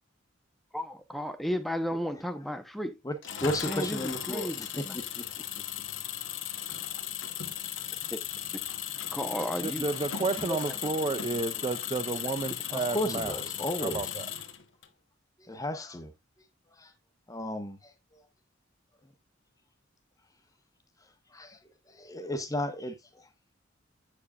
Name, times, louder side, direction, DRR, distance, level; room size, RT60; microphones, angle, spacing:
voice 1, 0.7-3.0 3.6-5.0 8.1-8.2 9.1-9.9 10.3-11.1 11.5-11.7, equal, ahead, 0.8 m, -34 dB
voice 2, 3.0-4.7 4.9-5.5 12.7-14.1 15.4-16.1 16.8-16.9 17.3-18.2 19.0-19.1 21.3-21.6 21.9-23.3, left 1 dB, 20° left, 1.1 m, -34 dB
Engine, 3.2-14.9, left 10 dB, 70° left, 1.0 m, -36 dB
voice 3, 9.6-13.3 13.8-14.1, right 3 dB, 25° right, 0.4 m, -31 dB
8.3 x 7.2 x 2.4 m
head